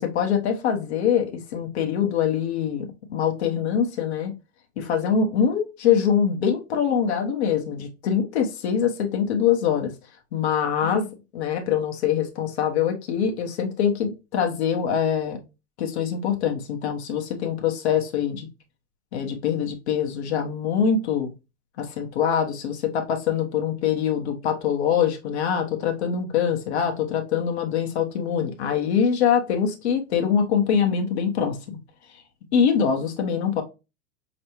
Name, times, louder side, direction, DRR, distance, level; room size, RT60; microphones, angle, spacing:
voice 1, 0.0-4.3 4.8-9.9 10.3-11.1 11.3-15.4 15.8-18.5 19.1-21.3 21.8-31.8 32.5-33.6, left 7 dB, 80° left, 3 dB, 1.2 m, -24 dB
5.4 x 3.2 x 3.0 m, 0.28 s
hypercardioid pair, 110°, 33 cm